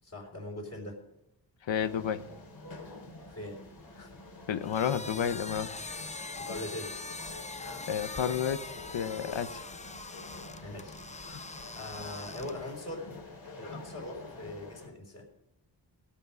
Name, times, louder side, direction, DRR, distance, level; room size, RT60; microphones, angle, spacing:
voice 1, 0.0-1.0 3.3-3.6 3.9-4.1 6.4-6.9 10.6-11.4 11.7-13.1 13.6-15.3, left 1 dB, 35° left, -3 dB, 5.0 m, -42 dB
voice 2, 1.7-2.2 4.5-5.7 7.9-8.6 8.9-9.6 11.3-11.4, left 8 dB, 80° left, 11 dB, 1.0 m, -31 dB
sound 1, 1.7-14.9, left 2 dB, 50° left, 4.5 m, -47 dB
sound 2, 4.6-12.8, left 3 dB, 15° left, 0.6 m, -43 dB
17.5 x 5.9 x 9.3 m, 0.83 s
wide cardioid pair, 90°, 44 cm